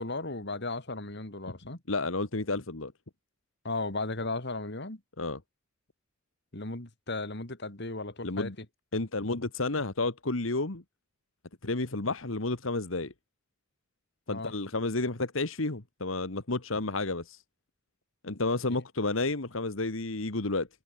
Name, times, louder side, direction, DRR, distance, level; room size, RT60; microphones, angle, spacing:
voice 1, 0.0-1.8 3.6-5.0 6.5-8.5 14.3-14.5 18.6-18.8, left 2 dB, 55° left, 2.9 m, -35 dB
voice 2, 1.9-2.9 5.2-5.4 8.2-8.5 8.9-10.8 11.6-13.1 14.3-17.4 18.2-20.7, left 2 dB, 75° left, 1.8 m, -31 dB
head